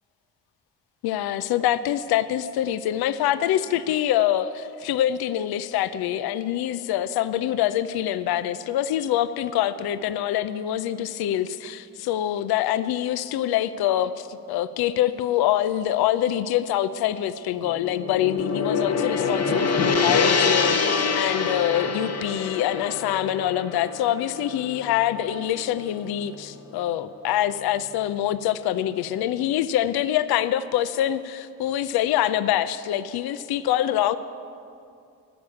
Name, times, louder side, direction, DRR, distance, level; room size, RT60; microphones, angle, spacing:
voice 1, 1.0-34.2, left 12 dB, 60° left, 14 dB, 0.6 m, -25 dB
Gong, 17.6-25.9, left 5 dB, 35° left, 1.0 m, -25 dB
11.0 x 6.9 x 8.6 m, 2.5 s
hypercardioid pair, 45°, 44 cm